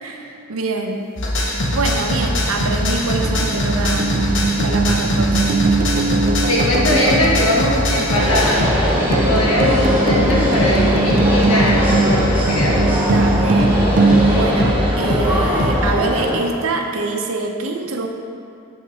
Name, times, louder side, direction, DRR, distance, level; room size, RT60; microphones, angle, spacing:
voice 1, 0.0-1.1 1.7-4.2 4.6-5.6 13.0-13.8 14.3-18.1, right 3 dB, 75° right, 3 dB, 0.7 m, -25 dB
sound 1, 1.2-15.9, left 1 dB, 60° left, 1.0 m, -21 dB
sound 2, 1.4-15.6, right 3 dB, 40° right, 0.4 m, -22 dB
voice 2, 6.5-12.7, left 1 dB, 85° left, -5 dB, 1.7 m, -21 dB
sound 3, 8.2-16.4, left 1 dB, 10° right, 1.8 m, -21 dB
7.3 x 5.8 x 4.1 m, 2.4 s
head